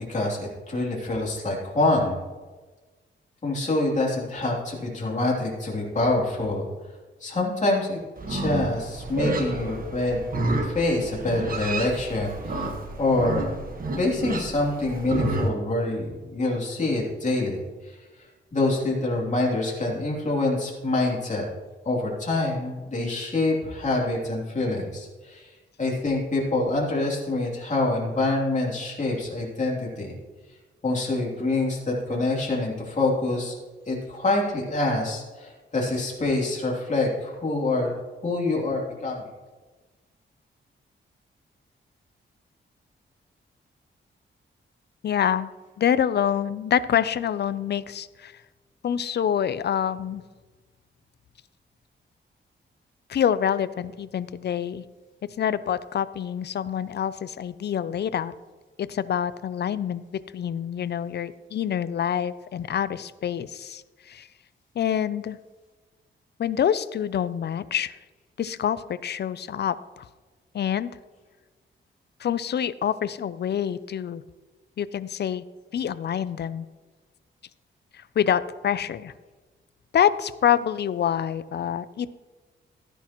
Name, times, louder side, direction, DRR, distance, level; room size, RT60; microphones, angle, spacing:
voice 1, 0.1-2.2 3.4-6.9 7.2-8.0 8.3-10.2 10.6-12.7 13.0-13.6 14.0-21.5 21.8-25.5 25.8-30.1 30.8-33.5 33.8-37.9 38.2-39.3, left 2 dB, 35° left, -3 dB, 3.0 m, -26 dB
Livestock farm animals working animals, 8.2-15.5, right 2 dB, 45° right, 1.4 m, -30 dB
voice 2, 45.0-45.5 45.8-48.3 48.8-50.2 53.1-54.8 55.4-58.3 58.8-60.0 60.3-64.3 64.8-65.4 66.4-67.9 68.4-70.0 70.5-70.9 72.2-74.2 74.8-75.4 75.7-76.7 77.9-79.1 79.9-82.1, left 9 dB, 55° left, 16 dB, 0.5 m, -26 dB
14.0 x 10.0 x 3.0 m, 1.3 s
wide cardioid pair, 110°, 21 cm